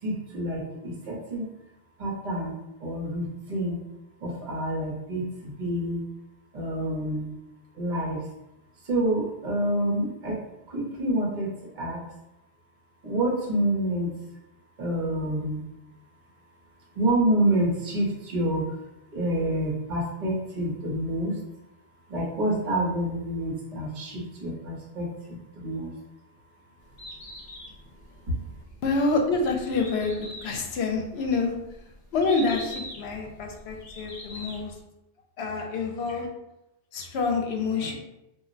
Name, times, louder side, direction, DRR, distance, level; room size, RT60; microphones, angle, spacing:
voice 1, 0.0-1.5 2.0-2.5 2.8-3.8 4.2-6.1 6.5-7.3 7.7-8.3 8.8-10.4 10.7-12.1 13.0-14.1 14.8-15.6 16.9-18.8 19.1-21.4 22.1-26.0 28.3-28.4, right 1 dB, 50° right, -3 dB, 0.9 m, -28 dB
Bird, 26.8-34.8, left 1 dB, 40° left, 0.7 m, -43 dB
voice 2, 28.8-31.6 32.1-34.7 35.4-36.3 36.9-37.9, left 3 dB, 75° left, 2 dB, 0.8 m, -27 dB
2.3 x 2.1 x 3.8 m, 0.90 s
omnidirectional pair, 1.1 m